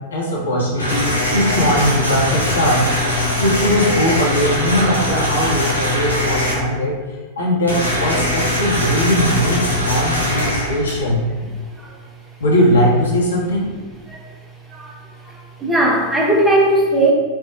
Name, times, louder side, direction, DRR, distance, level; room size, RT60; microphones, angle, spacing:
voice 1, 0.1-2.9 3.4-7.0 7.4-11.2 12.4-13.7, equal, 70° left, -4 dB, 0.8 m, -19 dB
sound 1, 0.8-6.5 7.7-11.3, left 1 dB, 90° right, 0.8 m, -21 dB
voice 2, 15.2-17.1, right 1 dB, 15° right, -2 dB, 0.6 m, -17 dB
4.4 x 2.1 x 2.5 m, 1.3 s
figure-of-eight pair, 90°, 0 cm